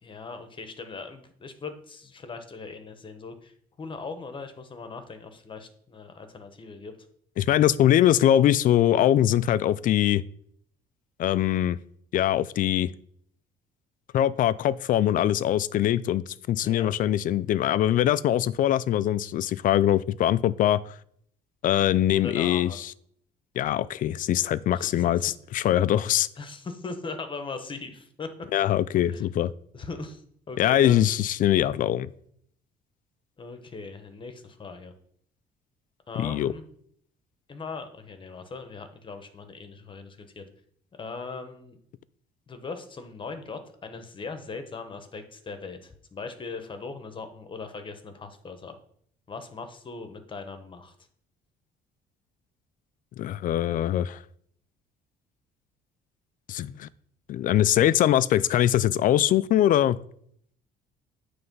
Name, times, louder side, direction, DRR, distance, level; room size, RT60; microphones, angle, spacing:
voice 1, 0.0-6.9 16.6-16.9 22.1-22.8 24.7-25.2 26.4-28.3 29.1-29.3 29.7-31.1 33.4-34.9 36.1-36.6 37.5-40.5 41.0-41.8 42.5-48.8 49.3-50.9, left 4 dB, 30° left, 8 dB, 1.1 m, -39 dB
voice 2, 7.4-10.2 11.2-11.8 12.1-12.9 14.1-20.8 21.6-22.9 23.6-26.3 28.5-29.5 30.6-32.1 36.2-36.5 53.2-54.2 56.5-56.9 57.3-60.0, left 12 dB, 55° left, 17 dB, 0.4 m, -22 dB
9.7 x 3.3 x 5.4 m, 0.66 s
cardioid pair, 110°, 17 cm